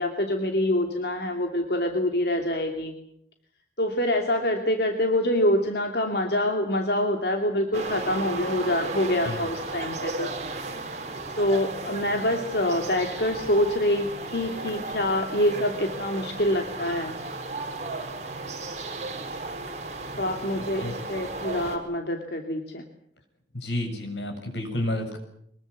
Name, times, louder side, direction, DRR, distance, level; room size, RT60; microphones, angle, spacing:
voice 1, 0.0-2.9 3.8-10.3 11.4-17.1 20.2-20.8 21.1-22.9, left 1 dB, 65° left, 4 dB, 2.8 m, -25 dB
sound 1, 7.7-21.8, right 3 dB, 40° right, 5.3 m, -35 dB
voice 2, 20.5-20.9 23.5-25.2, left 1 dB, 90° left, 6 dB, 6.9 m, -30 dB
24.0 x 21.5 x 8.3 m, 0.72 s
head